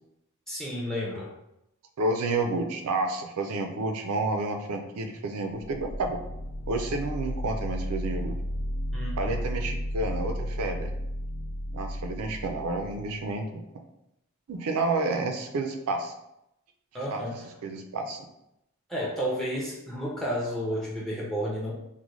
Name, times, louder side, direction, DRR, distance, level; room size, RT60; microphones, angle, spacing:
voice 1, 0.5-1.3 8.9-9.4 16.9-17.5 18.9-21.7, equal, ahead, -4 dB, 0.5 m, -31 dB
voice 2, 2.0-6.2 6.7-8.4 9.2-10.9 11.7-13.6 14.5-16.1 17.1-17.2 17.6-18.3, right 2 dB, 80° right, 5 dB, 0.4 m, -30 dB
sound 1, 5.7-13.3, equal, 55° left, 0.6 m, -33 dB
3.7 x 2.1 x 3.0 m, 0.85 s
head